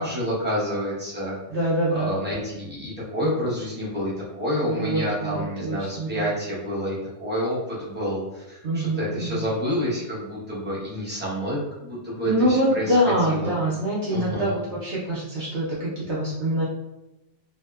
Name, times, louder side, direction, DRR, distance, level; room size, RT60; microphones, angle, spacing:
voice 1, 0.0-1.3 1.9-12.9 13.2-13.5 14.1-14.5, equal, 10° right, -8 dB, 0.5 m, -28 dB
voice 2, 1.5-2.1 4.6-6.3 8.6-9.5 12.3-16.7, right 1 dB, 65° right, -7 dB, 0.8 m, -25 dB
2.7 x 2.0 x 2.2 m, 1.0 s
omnidirectional pair, 1.5 m